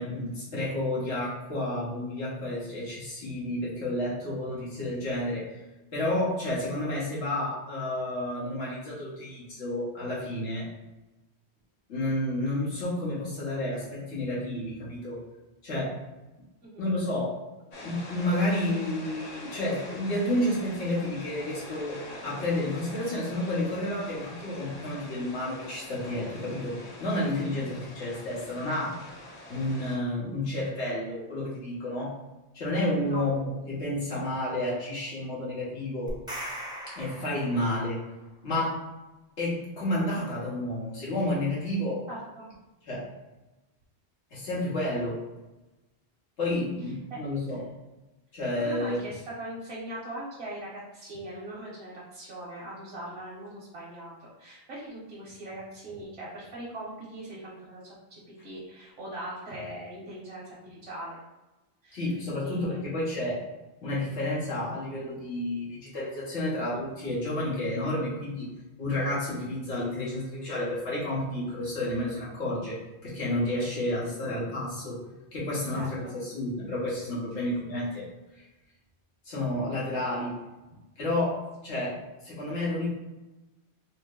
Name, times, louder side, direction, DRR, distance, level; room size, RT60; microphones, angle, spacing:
voice 1, 0.0-5.5 5.9-10.7 11.9-15.2 15.6-15.9 16.8-17.3 17.8-28.9 29.5-32.1 32.5-36.1 37.0-38.0 38.4-38.8 39.4-42.0 42.9-43.0 44.3-45.2 46.4-47.6 48.3-49.0 61.9-63.4 63.8-68.5 68.8-75.0 75.3-78.1 79.2-80.3 81.0-82.0 82.2-82.9, left 1 dB, 90° left, -7 dB, 1.6 m, -30 dB
voice 2, 16.6-16.9 27.6-27.8 33.0-33.3 42.1-42.5 47.1-47.2 47.5-47.6 48.6-61.2 61.8-62.0 62.4-62.8 75.7-76.2 77.4-77.5, right 1 dB, 70° right, -7 dB, 1.2 m, -40 dB
sound 1, 17.7-30.0, left 1 dB, 45° left, 0.6 m, -44 dB
sound 2, 36.1-38.0, right 1 dB, 5° right, 0.5 m, -39 dB
3.6 x 2.1 x 3.7 m, 1.1 s
omnidirectional pair, 1.1 m